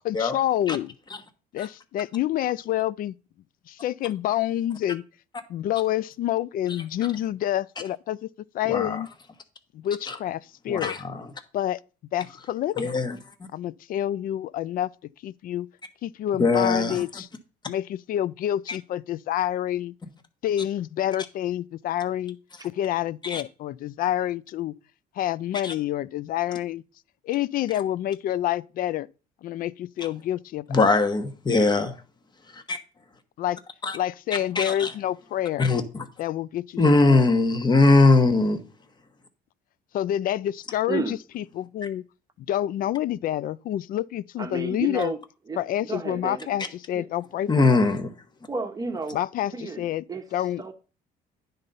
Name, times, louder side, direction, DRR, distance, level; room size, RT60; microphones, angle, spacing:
voice 1, 0.0-0.9 1.5-3.1 3.7-5.0 5.5-8.3 8.5-9.1 9.7-11.0 11.5-11.8 12.1-13.0 13.5-14.9 15.2-15.7 16.0-17.3 17.7-19.9 20.4-22.4 22.6-24.7 25.2-26.8 27.2-29.1 29.4-30.8 33.4-33.6 33.9-35.7 36.2-37.3 39.9-42.0 42.4-45.1 45.6-47.8 49.1-50.0 50.3-50.6, left 12 dB, 55° left, 0.4 m, -28 dB
voice 2, 8.7-9.0 10.1-10.2 10.7-11.3 12.8-13.2 16.4-17.0 23.2-23.4 25.6-25.7 30.7-32.0 32.7-32.8 33.8-34.0 34.5-34.9 35.6-36.0 36.8-38.6 47.5-48.1, left 3 dB, 25° left, 1.1 m, -21 dB
voice 3, 44.4-45.2 45.5-46.5 46.9-47.1 48.5-49.2 49.5-50.2 50.6-50.7, right 4 dB, 20° right, 0.9 m, -32 dB
9.9 x 4.0 x 5.4 m
cardioid pair, 110°, 17 cm